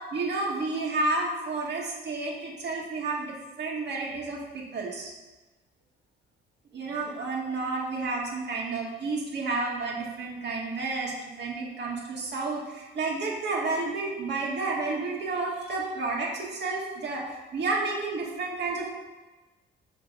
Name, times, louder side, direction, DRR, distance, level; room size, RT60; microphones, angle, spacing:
voice 1, 0.0-5.1 6.7-18.9, right 3 dB, 60° right, -2 dB, 1.9 m, -31 dB
6.3 x 3.8 x 5.7 m, 1.2 s
cardioid pair, 90°, 20 cm